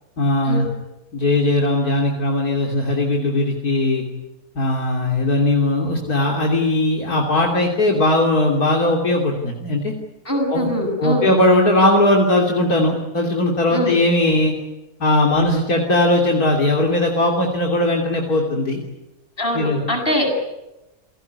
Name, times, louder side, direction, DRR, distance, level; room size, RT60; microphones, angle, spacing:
voice 1, 0.2-0.7 1.1-4.0 4.6-9.9 10.5-10.7 11.0-14.5 15.0-18.8 19.5-19.8, left 1 dB, 70° left, 0 dB, 3.6 m, -18 dB
voice 2, 10.2-11.3 13.7-14.0 19.4-20.3, equal, 35° left, 1 dB, 8.1 m, -22 dB
28.5 x 18.0 x 9.6 m, 0.93 s
omnidirectional pair, 1.7 m